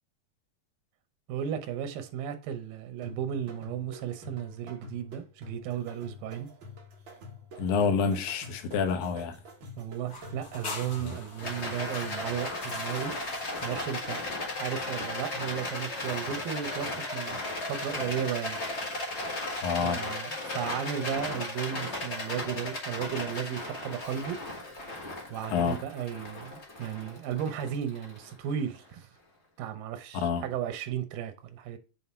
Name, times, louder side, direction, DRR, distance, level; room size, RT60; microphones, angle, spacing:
voice 1, 1.3-6.5 9.8-13.2 13.6-14.2 14.6-17.4 17.7-18.6 19.2-24.4 25.3-29.1 29.6-31.8, right 9 dB, 85° right, 2.6 m, -35 dB
sound 1, 3.0-12.9, left 1 dB, 50° right, 1.5 m, -48 dB
voice 2, 7.6-9.4 11.0-11.2 19.6-20.0 25.5-25.8 30.2-30.5, left 5 dB, 80° left, 2.8 m, -28 dB
sound 2, 10.0-14.6, left 3 dB, 50° left, 1.2 m, -44 dB
Rattle, 11.4-28.7, left 2 dB, 30° left, 1.2 m, -36 dB
7.7 x 3.7 x 4.3 m
omnidirectional pair, 4.0 m